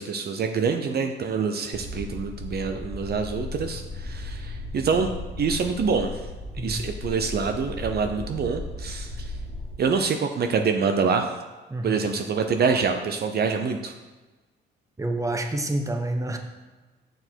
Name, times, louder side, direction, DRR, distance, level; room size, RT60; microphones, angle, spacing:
voice 1, 0.0-5.1 5.4-6.2 6.6-9.3 9.8-11.3 11.8-13.9, right 5 dB, 55° right, 6 dB, 0.7 m, -26 dB
sound 1, 1.7-9.7, left 2 dB, 30° left, 1.7 m, -36 dB
voice 2, 11.7-12.1 15.0-16.4, right 1 dB, 15° right, 5 dB, 0.9 m, -28 dB
6.7 x 6.5 x 4.5 m, 1.2 s
cardioid pair, 90°, 20 cm